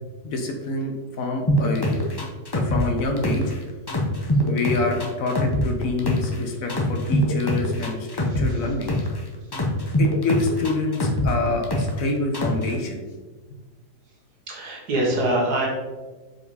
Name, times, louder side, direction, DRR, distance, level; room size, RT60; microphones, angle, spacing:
voice 1, 0.2-1.9 2.5-3.5 4.4-8.9 10.0-13.0, left 3 dB, 60° left, 3 dB, 1.3 m, -27 dB
sound 1, 1.5-3.6 3.9-6.4 6.7-9.2 9.5-12.0 12.3-12.7, left 1 dB, 30° left, 0.4 m, -23 dB
voice 2, 8.2-9.0 14.5-15.7, right 1 dB, 75° right, -2 dB, 1.9 m, -26 dB
4.9 x 4.9 x 4.0 m, 1.3 s
omnidirectional pair, 1.7 m